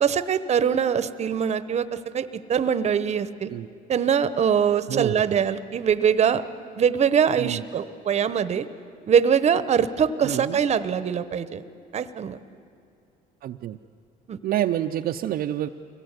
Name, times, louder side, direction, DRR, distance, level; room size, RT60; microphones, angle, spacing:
voice 1, 0.0-3.5 3.9-6.4 6.8-8.7 9.1-11.6 11.9-12.4 14.3-14.4, right 7 dB, 40° right, 13 dB, 0.9 m, -23 dB
voice 2, 4.9-5.4 7.4-7.6 10.2-10.6 13.4-13.8 14.4-15.7, right 12 dB, 65° right, 5 dB, 0.6 m, -28 dB
24.0 x 17.5 x 8.1 m, 2.4 s
cardioid pair, 110°, 17 cm